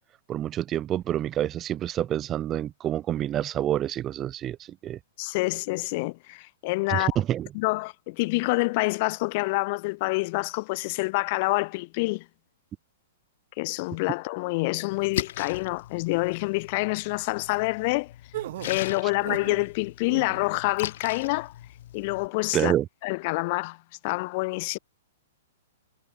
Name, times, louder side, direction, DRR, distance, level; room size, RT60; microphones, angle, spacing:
voice 1, 0.3-5.0 6.9-7.5 22.5-22.9, right 11 dB, 20° right, 0.6 m, -27 dB
voice 2, 5.2-7.1 7.5-12.2 13.6-18.1 18.6-21.5 21.9-22.7 23.0-23.8 24.0-24.8, left 25 dB, 35° left, 0.8 m, -27 dB
Splash splatter, 14.9-22.3, left 12 dB, 55° left, 1.8 m, -39 dB
sound 1, 18.3-19.6 20.0-20.5, right 15 dB, 50° right, 1.4 m, -37 dB
hypercardioid pair, 165°, 0 cm